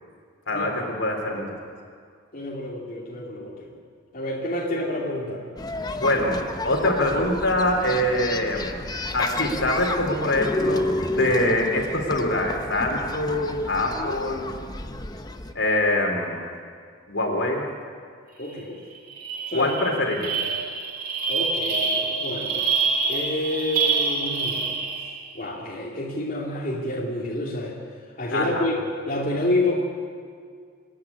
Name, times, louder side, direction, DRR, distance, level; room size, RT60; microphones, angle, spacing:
voice 1, 0.5-1.6 6.0-14.5 15.5-16.4 17.1-17.7 19.5-20.4 28.3-28.6, left 1 dB, 70° left, 1 dB, 3.6 m, -24 dB
voice 2, 2.3-3.7 4.1-5.4 18.4-18.8 19.5-19.8 21.3-22.7 23.1-24.8 25.3-27.8 28.2-28.8 29.1-29.8, left 1 dB, 45° left, -4 dB, 2.9 m, -28 dB
sound 1, 5.6-15.5, left 1 dB, 20° left, 0.9 m, -31 dB
sound 2, 18.5-18.6 18.9-25.3, right 4 dB, 50° right, 2.7 m, -26 dB
26.5 x 10.5 x 9.8 m, 2.1 s
head